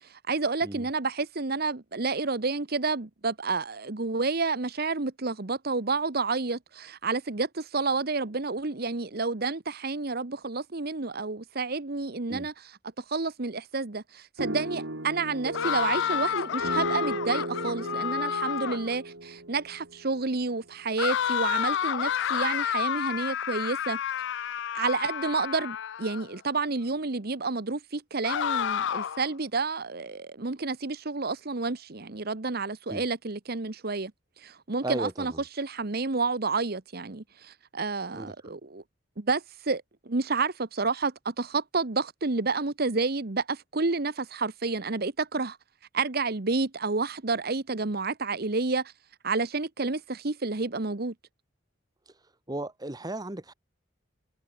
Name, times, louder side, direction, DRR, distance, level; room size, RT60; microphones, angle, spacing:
voice 1, 0.0-12.5 13.0-24.0 24.7-34.1 34.4-35.3 35.6-38.8 39.2-45.6 45.9-48.9 49.2-51.1, right 3 dB, 55° right, 1.2 m, -30 dB
sound 1, 14.4-20.4, right 1 dB, 75° right, 3.4 m, -36 dB
sound 2, 15.5-18.9 21.0-26.3 28.2-29.3, left 9 dB, 65° left, 0.4 m, -30 dB
voice 2, 34.8-35.4 38.1-38.5 52.1-52.2 52.5-53.5, right 1 dB, 20° right, 1.3 m, -36 dB
head